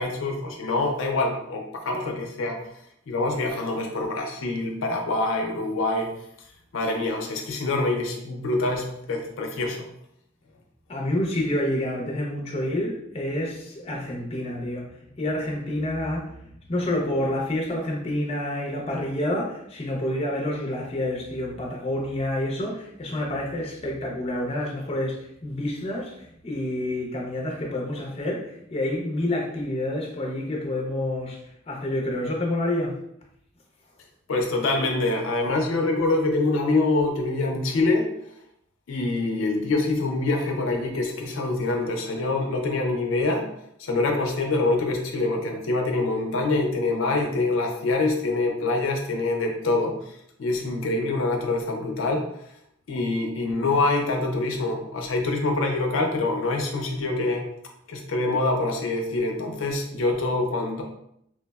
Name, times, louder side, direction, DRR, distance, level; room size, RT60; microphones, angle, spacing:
voice 1, 0.0-2.6 3.1-6.1 6.7-9.9 34.3-38.1 38.9-43.4 43.8-49.9 50.4-52.3 52.9-57.5 57.9-60.8, left 2 dB, 85° left, 2 dB, 0.5 m, -25 dB
voice 2, 10.9-14.9 15.2-16.3 16.7-26.1 26.4-31.4 31.7-32.9, left 1 dB, 30° left, -1 dB, 0.5 m, -28 dB
3.2 x 2.0 x 2.2 m, 0.73 s
head